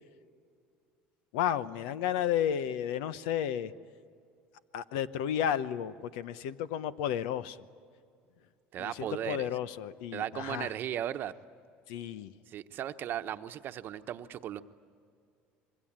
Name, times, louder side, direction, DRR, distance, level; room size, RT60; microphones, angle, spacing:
voice 1, 1.3-3.7 4.7-7.6 8.8-10.7 11.9-12.3, left 10 dB, 85° left, 14 dB, 0.9 m, -32 dB
voice 2, 8.7-9.5 10.1-11.3 12.5-14.6, right 11 dB, 50° right, 9 dB, 1.0 m, -36 dB
26.0 x 23.5 x 8.9 m, 2.3 s
supercardioid pair, 105°, 4 cm